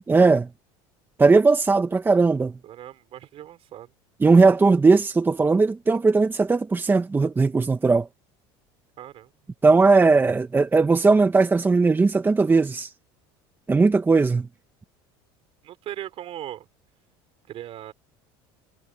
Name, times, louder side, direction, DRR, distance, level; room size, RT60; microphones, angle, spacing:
voice 1, 0.1-0.5 1.2-2.6 4.2-8.1 9.6-12.9 13.7-14.5, right 4 dB, 15° right, 1.3 m, -18 dB
voice 2, 2.6-3.9 9.0-9.3 15.6-16.7 17.5-17.9, right 12 dB, 50° right, 5.4 m, -38 dB
supercardioid pair, 110°, 13 cm